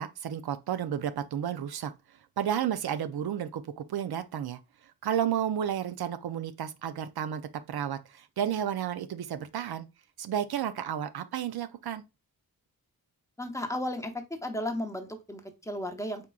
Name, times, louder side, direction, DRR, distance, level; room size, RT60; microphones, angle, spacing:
voice 1, 0.0-1.9 2.4-4.6 5.0-7.4 7.7-9.9 10.2-12.0, right 9 dB, 80° right, 0.6 m, -32 dB
voice 2, 13.4-16.3, left 1 dB, 10° left, 0.8 m, -34 dB
4.4 x 3.7 x 2.3 m
wide cardioid pair, 95°, 37 cm